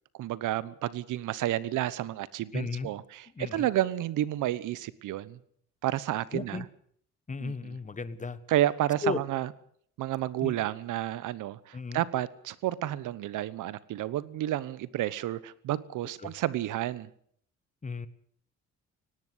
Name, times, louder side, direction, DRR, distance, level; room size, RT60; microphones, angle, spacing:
voice 1, 0.1-5.4 5.8-6.7 7.4-7.8 8.5-9.5 10.0-17.1, right 13 dB, 85° right, 18 dB, 1.1 m, -31 dB
voice 2, 2.5-2.9 3.4-3.7 6.3-6.6 7.3-8.4 9.0-9.2 10.4-10.6 11.7-12.0 16.2-16.3 17.8-18.1, left 4 dB, 25° left, 14 dB, 1.5 m, -34 dB
18.5 x 17.5 x 8.1 m, 0.64 s
cardioid pair, 90°, 30 cm